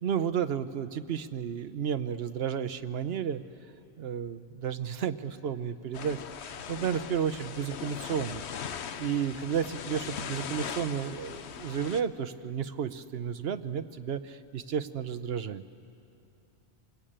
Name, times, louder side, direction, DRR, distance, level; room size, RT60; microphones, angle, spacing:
voice 1, 0.0-3.4 4.0-15.6, right 8 dB, 70° right, 12 dB, 1.1 m, -32 dB
sound 1, 5.9-12.0, left 7 dB, 80° left, 1.1 m, -39 dB
27.0 x 21.5 x 8.8 m, 2.6 s
omnidirectional pair, 1.1 m